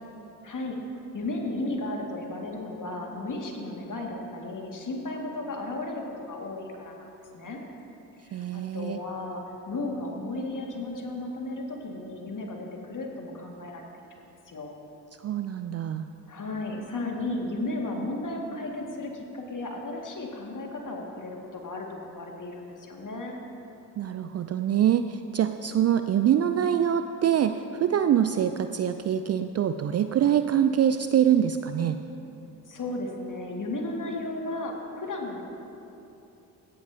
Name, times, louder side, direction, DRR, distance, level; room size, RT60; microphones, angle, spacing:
voice 1, 0.4-0.8 1.1-7.6 8.2-14.8 16.3-23.4 32.7-35.4, left 2 dB, 40° left, 0 dB, 2.1 m, -34 dB
voice 2, 8.3-9.0 15.2-16.1 24.0-32.0, right 9 dB, 35° right, 9 dB, 0.4 m, -24 dB
16.5 x 11.5 x 2.8 m, 3.0 s
hypercardioid pair, 45°, 48 cm